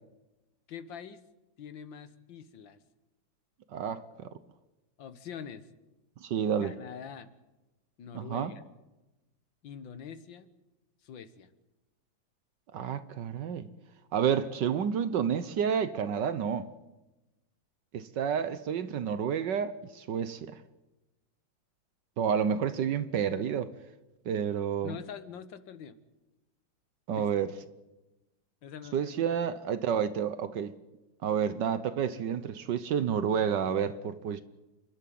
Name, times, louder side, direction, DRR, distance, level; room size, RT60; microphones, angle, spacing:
voice 1, 0.7-1.2 1.6-2.8 5.0-5.7 6.6-7.3 8.0-8.6 9.6-10.5 11.0-11.5 24.8-26.0 27.2-27.3 28.6-29.4, left 7 dB, 80° left, 2.0 m, -44 dB
voice 2, 3.7-4.3 6.2-6.7 8.1-8.5 12.7-13.7 14.1-16.7 17.9-20.6 22.2-23.7 24.2-25.0 27.1-27.5 28.9-30.7 31.2-34.4, right 8 dB, 70° right, 1.5 m, -30 dB
28.5 x 12.0 x 9.3 m
omnidirectional pair, 2.0 m